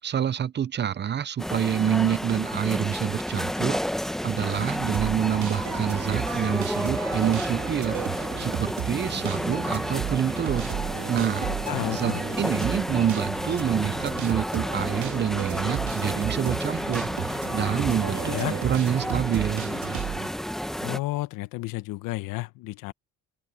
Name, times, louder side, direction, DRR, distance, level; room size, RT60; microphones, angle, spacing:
voice 1, 0.0-10.7 11.1-11.5 11.9-19.7, right 9 dB, 35° right, 0.7 m, -27 dB
sound 1, 1.4-21.0, equal, ahead, 1.3 m, -31 dB
sound 2, 4.9-20.3, right 12 dB, 65° right, 3.0 m, -34 dB
voice 2, 11.5-12.2 18.2-18.6 20.8-22.9, left 19 dB, 80° left, 1.3 m, -32 dB
cardioid pair, 100°, 32 cm